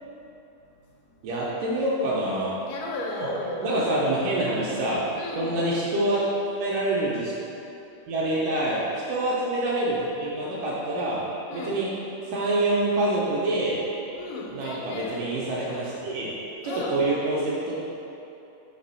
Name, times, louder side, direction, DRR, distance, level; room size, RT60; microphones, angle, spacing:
voice 1, 1.2-2.5 3.2-3.3 3.6-5.0 5.4-6.2 6.6-7.3 8.1-8.8 9.1-11.2 11.5-11.9 12.3-13.8 14.5-16.3 16.6-17.7, right 1 dB, 75° right, -6 dB, 2.0 m, -26 dB
voice 2, 2.7-3.7 4.5-4.8 5.2-5.6 11.5-11.8 14.2-15.3 16.6-17.0, left 2 dB, 85° left, -2 dB, 2.7 m, -35 dB
5.9 x 3.3 x 5.5 m, 2.9 s
omnidirectional pair, 4.3 m